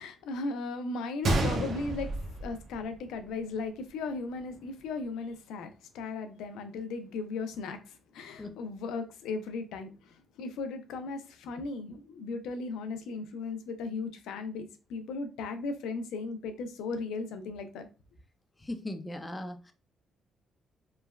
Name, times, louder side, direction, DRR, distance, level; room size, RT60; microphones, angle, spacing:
voice 1, 0.0-17.9, left 3 dB, 90° left, 0.4 m, -37 dB
Gunshot gunfire, 1.2-3.3 3.5-3.6 4.3-4.5, right 2 dB, 60° right, 0.5 m, -30 dB
voice 2, 18.6-19.7, left 1 dB, 20° left, 0.4 m, -38 dB
3.1 x 2.2 x 2.2 m
cardioid pair, 90°, 0 cm